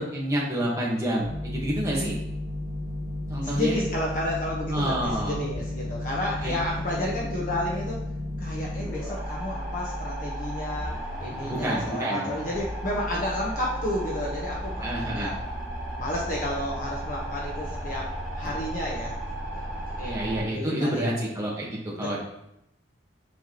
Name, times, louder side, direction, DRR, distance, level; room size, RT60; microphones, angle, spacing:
voice 1, 0.0-2.1 3.3-3.8 4.7-5.3 6.4-6.5 11.4-12.2 14.8-15.3 20.0-21.7 22.0-22.2, right 1 dB, 15° right, -5 dB, 1.5 m, -28 dB
sound 1, 1.2-20.4, equal, ahead, 1.9 m, -34 dB
voice 2, 3.4-8.0 8.4-15.4 16.0-19.2 19.5-21.2 22.0-22.2, left 1 dB, 45° left, -4 dB, 1.2 m, -32 dB
7.4 x 4.6 x 3.0 m, 0.81 s
head